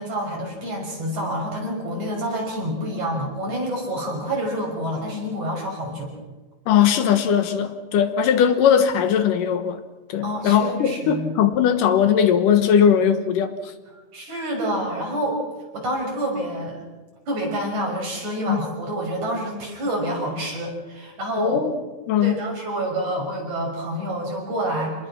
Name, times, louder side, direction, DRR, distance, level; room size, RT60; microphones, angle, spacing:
voice 1, 0.0-6.1 10.2-11.3 14.1-15.4 15.7-16.8 17.3-21.6 22.2-25.0, right 1 dB, 60° right, -1 dB, 7.2 m, -28 dB
voice 2, 6.7-9.8 10.1-13.6 18.5-18.6 21.4-21.8 22.1-22.5, left 8 dB, 75° left, 8 dB, 2.8 m, -19 dB
27.5 x 20.5 x 6.0 m, 1.2 s
omnidirectional pair, 3.8 m